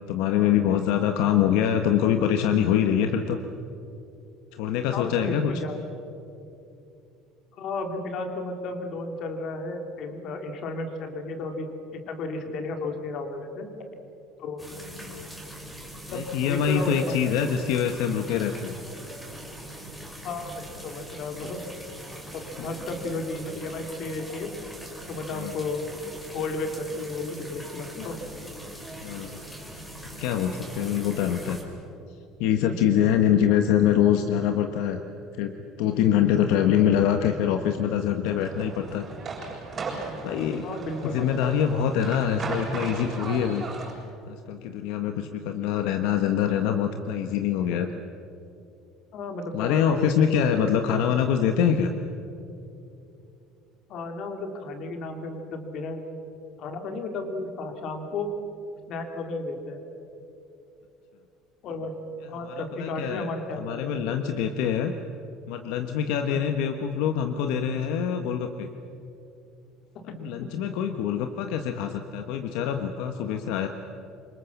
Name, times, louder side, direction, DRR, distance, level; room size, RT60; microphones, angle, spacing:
voice 1, 0.1-3.4 4.5-5.5 15.0-15.3 16.1-18.8 25.3-25.6 29.0-29.4 30.2-31.6 32.4-35.0 35.3-35.5 35.8-39.0 40.2-40.7 41.0-43.7 44.3-47.9 49.5-51.9 62.4-63.3 63.6-64.9 65.5-68.7 70.0-73.7, left 9 dB, 70° left, 6 dB, 1.3 m, -24 dB
voice 2, 4.9-5.8 7.6-13.7 14.4-14.6 16.1-17.6 20.2-21.7 22.3-24.5 25.1-25.8 26.3-28.2 32.7-32.8 36.8-36.9 40.6-41.5 49.1-50.7 53.9-56.0 56.6-58.3 58.9-59.8 61.6-61.9 62.3-64.5 66.3-66.4 70.0-70.5, left 3 dB, 45° left, 5 dB, 3.1 m, -33 dB
sound 1, 14.6-31.6, right 1 dB, 5° left, 3.8 m, -42 dB
sound 2, 38.2-43.9, right 4 dB, 25° right, 7.0 m, -36 dB
27.5 x 24.5 x 7.2 m, 2.7 s
cardioid pair, 170°, 0 cm